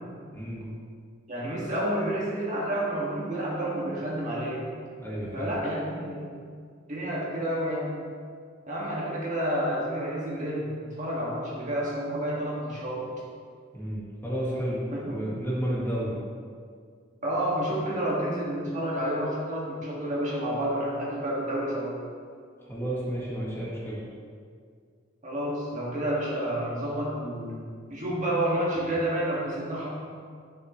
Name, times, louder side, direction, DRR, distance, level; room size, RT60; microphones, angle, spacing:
voice 1, 0.3-0.7 5.0-5.5 13.7-16.2 22.6-24.0, equal, 10° left, -7 dB, 1.6 m, -32 dB
voice 2, 1.3-4.6 5.3-6.2 6.9-7.9 8.7-13.1 14.9-15.2 17.2-21.9 25.2-27.6 27.9-29.9, right 1 dB, 40° right, -5 dB, 1.8 m, -29 dB
10.5 x 6.4 x 3.1 m, 2.1 s
head